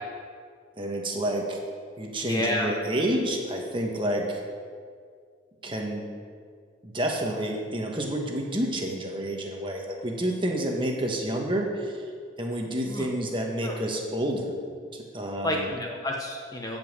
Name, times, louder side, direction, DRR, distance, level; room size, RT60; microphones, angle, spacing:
voice 1, 0.8-1.6 2.0-4.4 5.6-6.0 6.8-12.0 12.4-14.5 14.9-15.7, right 1 dB, 25° right, 0 dB, 1.5 m, -29 dB
voice 2, 2.2-2.7 12.8-13.1 13.6-13.8 15.4-16.8, left 1 dB, 20° left, 0 dB, 0.9 m, -30 dB
13.5 x 5.6 x 8.1 m, 2.1 s
head